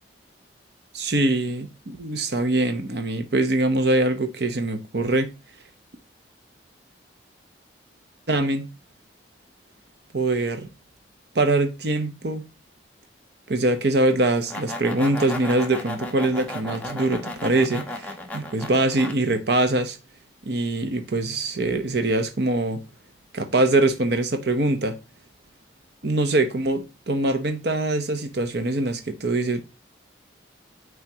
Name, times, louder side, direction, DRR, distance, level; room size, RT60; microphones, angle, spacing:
voice 1, 0.9-5.3 8.3-8.7 10.1-10.7 11.3-12.5 13.5-20.0 20.5-22.8 23.3-25.0 26.0-29.6, right 2 dB, 60° right, 0.8 m, -23 dB
sound 1, 14.2-19.1, left 1 dB, 10° left, 0.9 m, -34 dB
9.5 x 3.7 x 2.8 m
head